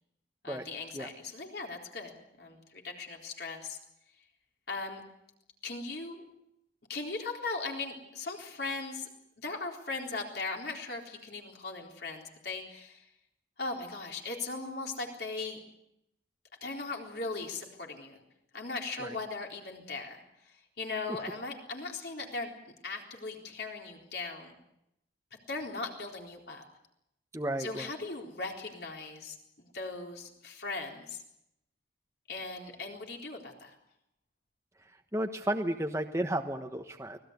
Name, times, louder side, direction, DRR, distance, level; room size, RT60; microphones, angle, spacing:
voice 1, 0.4-3.8 4.7-5.0 5.6-6.2 6.9-9.1 9.4-13.1 13.6-15.6 16.6-18.2 18.5-20.2 20.8-22.5 22.8-24.5 25.5-26.6 27.6-31.2 32.3-33.7, left 3 dB, 60° left, 1 dB, 4.0 m, -38 dB
voice 2, 27.3-27.9 35.1-37.2, right 1 dB, 15° right, 5 dB, 1.1 m, -33 dB
25.0 x 18.0 x 8.2 m, 0.81 s
head